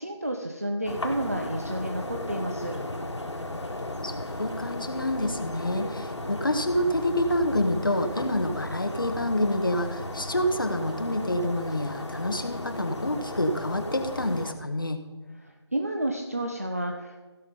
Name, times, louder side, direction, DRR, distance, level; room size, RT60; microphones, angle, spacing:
voice 1, 0.0-2.7 15.4-17.3, right 1 dB, 30° right, 3 dB, 0.6 m, -31 dB
sound 1, 0.8-14.5, left 1 dB, 85° left, 1.8 m, -35 dB
voice 2, 4.4-15.0, left 1 dB, 50° left, 6 dB, 1.2 m, -27 dB
16.0 x 5.5 x 5.5 m, 1.3 s
figure-of-eight pair, 180°, 15 cm